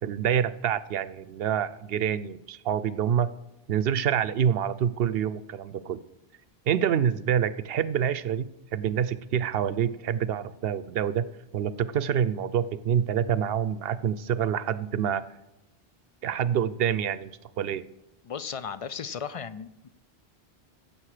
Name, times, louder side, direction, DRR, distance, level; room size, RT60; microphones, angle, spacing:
voice 1, 0.0-3.3 3.7-6.0 6.7-11.3 11.5-15.2 16.2-17.3 17.6-17.8, right 9 dB, 75° right, 16 dB, 0.8 m, -27 dB
voice 2, 18.2-19.9, left 6 dB, 55° left, 14 dB, 0.4 m, -36 dB
15.5 x 7.1 x 4.9 m, 0.88 s
omnidirectional pair, 1.0 m